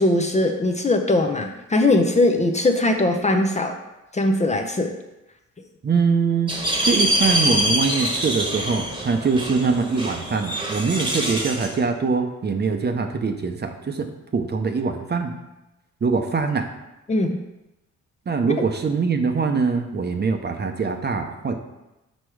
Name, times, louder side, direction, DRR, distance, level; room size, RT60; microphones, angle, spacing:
voice 1, 0.0-3.8 4.1-4.9 17.1-17.4 18.6-18.7, left 2 dB, 25° left, 4 dB, 0.6 m, -20 dB
voice 2, 5.8-6.5 6.8-15.3 16.0-16.6 18.3-21.6, right 5 dB, 35° right, 5 dB, 0.7 m, -23 dB
sound 1, 6.5-11.7, equal, 15° right, 1.2 m, -24 dB
6.3 x 4.4 x 4.8 m, 0.97 s
cardioid pair, 105°, 29 cm